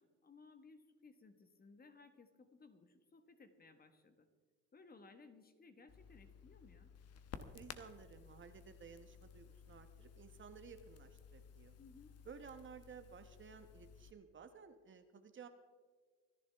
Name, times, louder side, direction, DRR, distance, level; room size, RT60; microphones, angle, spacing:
voice 1, 0.0-4.3 4.7-6.9 11.8-12.2, left 4 dB, 25° left, 8 dB, 1.4 m, -61 dB
Crackle, 5.9-14.1, left 7 dB, 45° left, 1.1 m, -56 dB
voice 2, 7.4-11.7 12.2-15.5, right 6 dB, 35° right, 8 dB, 1.1 m, -56 dB
25.0 x 10.5 x 3.5 m, 1.5 s
supercardioid pair, 100°, 34 cm